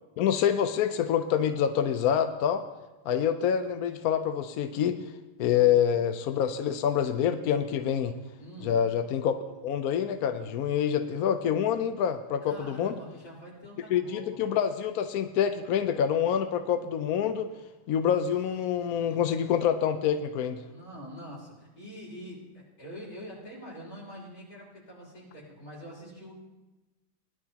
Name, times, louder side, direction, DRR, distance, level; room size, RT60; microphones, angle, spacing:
voice 1, 0.2-2.6 3.1-5.0 5.4-8.1 8.6-9.3 9.6-13.0 13.9-17.5 17.9-20.6, left 8 dB, 70° left, 8 dB, 0.9 m, -26 dB
voice 2, 8.4-8.8 12.4-14.4 18.9-19.1 20.7-26.3, equal, 45° left, -6 dB, 5.5 m, -45 dB
20.0 x 11.0 x 2.9 m, 1.1 s
omnidirectional pair, 2.2 m